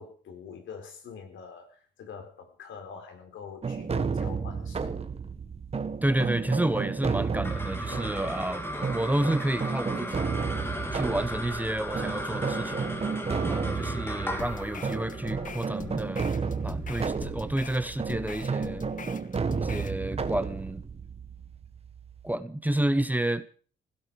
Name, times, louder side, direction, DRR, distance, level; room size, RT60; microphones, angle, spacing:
voice 1, 0.0-5.0, left 6 dB, 75° left, 4.5 m, -45 dB
sound 1, 3.6-22.3, right 5 dB, 30° right, 1.6 m, -32 dB
voice 2, 6.0-10.4 10.7-13.0 13.5-16.2 16.6-18.9 19.6-20.8 22.2-23.5, right 1 dB, 10° right, 1.0 m, -30 dB
sound 2, 7.2-17.8, left 1 dB, 10° left, 3.0 m, -37 dB
sound 3, 14.4-20.0, left 6 dB, 40° left, 1.3 m, -42 dB
16.0 x 16.0 x 5.0 m
cardioid pair, 90°, 20 cm